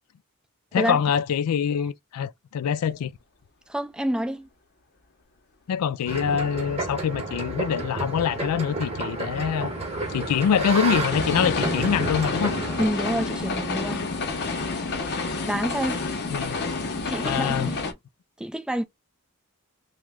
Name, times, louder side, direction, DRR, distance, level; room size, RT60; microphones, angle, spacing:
voice 1, 0.7-3.1 5.7-9.7 10.1-12.5 16.3-16.6 17.2-17.7, left 7 dB, 90° left, 0.3 m, -25 dB
voice 2, 3.7-4.5 12.8-14.1 15.5-16.0 17.1-17.8 18.4-18.8, equal, 5° right, 0.3 m, -28 dB
sound 1, 6.1-12.9, right 2 dB, 25° right, 0.8 m, -30 dB
sound 2, 8.6-17.9, left 3 dB, 50° left, 0.7 m, -30 dB
3.0 x 2.1 x 3.5 m
head